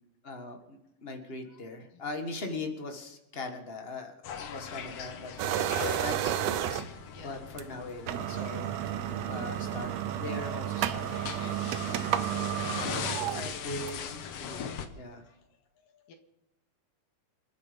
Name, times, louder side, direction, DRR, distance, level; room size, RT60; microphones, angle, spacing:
voice 1, 0.2-12.7 13.0-15.2, left 2 dB, 45° left, 5 dB, 0.7 m, -41 dB
voice 2, 1.5-2.0 7.1-7.4 12.9-13.8 14.9-16.1, left 6 dB, 75° left, 5 dB, 3.4 m, -49 dB
sound 1, 4.2-14.9, left 7 dB, 60° left, 1.7 m, -40 dB
sound 2, 5.4-7.1 7.6-7.7 8.0-14.2, right 11 dB, 75° right, 1.5 m, -32 dB
27.5 x 9.8 x 5.2 m, 0.89 s
omnidirectional pair, 4.0 m